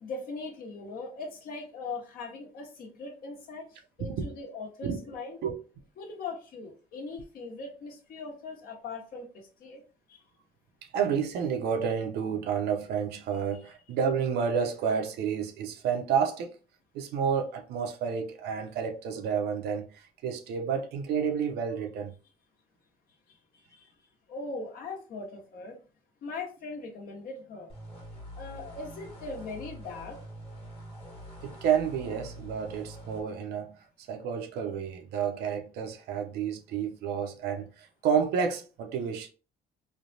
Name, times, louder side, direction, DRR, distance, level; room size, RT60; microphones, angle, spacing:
voice 1, 0.0-5.4 6.0-9.8 10.1-10.2 23.3-23.9 24.3-25.8 26.2-27.7 28.4-30.2, left 3 dB, 60° left, 1.1 m, -40 dB
voice 2, 4.0-4.3 4.8-5.0 5.4-5.6 10.9-16.5 16.9-22.1 31.4-33.7 34.0-39.3, right 7 dB, 75° right, 0.6 m, -30 dB
sound 1, 27.7-33.2, equal, 30° left, 1.3 m, -45 dB
3.2 x 2.2 x 2.6 m
cardioid pair, 110°, 17 cm